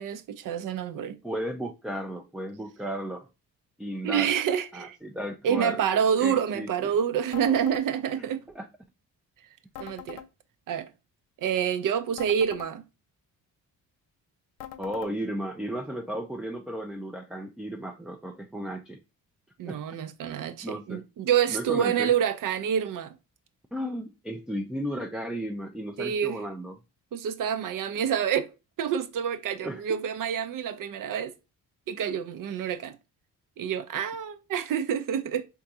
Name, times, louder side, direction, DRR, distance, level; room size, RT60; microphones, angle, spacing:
voice 1, 0.0-1.2 4.0-5.0 5.4-8.4 9.8-10.2 10.7-10.9 11.4-12.8 19.6-23.1 26.0-26.4 27.1-28.5 28.8-31.3 31.9-32.9 33.6-35.5, right 8 dB, 55° right, 0.5 m, -27 dB
voice 2, 1.2-3.3 3.8-4.3 4.7-5.8 6.2-6.9 8.2-8.3 8.6-8.7 14.8-19.0 19.7-19.8 20.6-21.0 21.5-22.1 23.7-26.7 29.6-30.0, equal, ahead, 0.3 m, -34 dB
sound 1, 7.3-7.9 9.7-10.3 12.2-12.7 14.6-15.1, left 11 dB, 75° left, 0.5 m, -42 dB
3.7 x 2.3 x 2.7 m
supercardioid pair, 55°, 38 cm